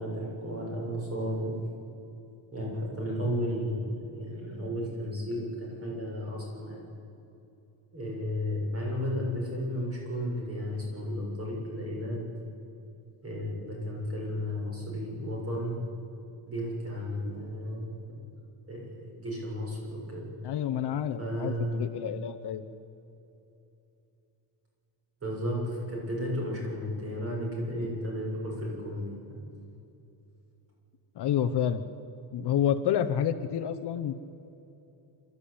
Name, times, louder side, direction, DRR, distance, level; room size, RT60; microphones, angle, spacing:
voice 1, 0.0-1.5 2.5-6.8 7.9-12.2 13.2-15.8 16.5-18.3 18.7-20.2 21.2-21.8 25.2-29.4, equal, 30° right, -2 dB, 7.1 m, -33 dB
voice 2, 20.4-22.6 31.2-31.8 32.3-34.2, left 9 dB, 55° left, 8 dB, 1.0 m, -29 dB
28.0 x 13.5 x 8.7 m, 2.9 s
cardioid pair, 155°, 48 cm